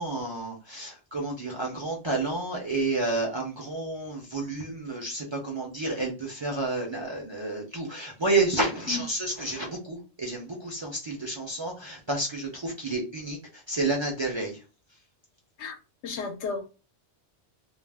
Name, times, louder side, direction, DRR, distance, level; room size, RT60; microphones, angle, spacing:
voice 1, 0.0-13.4 13.7-14.5, right 2 dB, 35° right, 0.5 m, -30 dB
voice 2, 16.0-16.7, left 5 dB, 80° left, 0.9 m, -33 dB
2.4 x 2.0 x 3.2 m
omnidirectional pair, 1.1 m